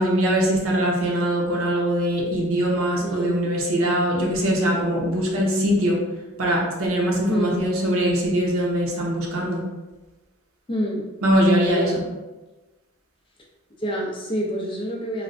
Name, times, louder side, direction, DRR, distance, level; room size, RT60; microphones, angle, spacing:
voice 1, 0.0-6.0 6.4-9.6 11.2-12.0, equal, 80° right, -2 dB, 0.7 m, -22 dB
voice 2, 3.0-3.5 7.3-7.7 10.7-11.0 11.8-12.0 13.8-15.2, equal, 25° left, -2 dB, 0.4 m, -27 dB
3.2 x 2.0 x 2.6 m, 1.1 s
head